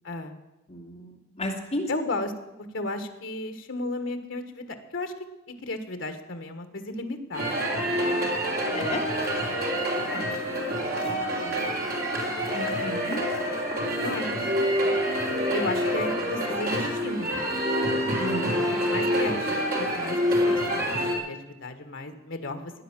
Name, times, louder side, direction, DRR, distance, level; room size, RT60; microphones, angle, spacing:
voice 1, 0.0-0.4 1.9-2.3 2.7-5.1 5.6-7.8 10.0-10.4 14.0-14.9 15.5-17.4 18.9-19.5 19.8-21.0 21.3-22.7, left 2 dB, 65° left, 7 dB, 1.6 m, -34 dB
voice 2, 0.7-1.9 8.7-9.0 11.0-11.8 12.5-13.2 18.2-18.6, left 1 dB, 30° left, -1 dB, 2.6 m, -34 dB
sound 1, 7.3-21.1, equal, 45° right, 3.1 m, -27 dB
15.5 x 10.0 x 7.4 m, 1.0 s
head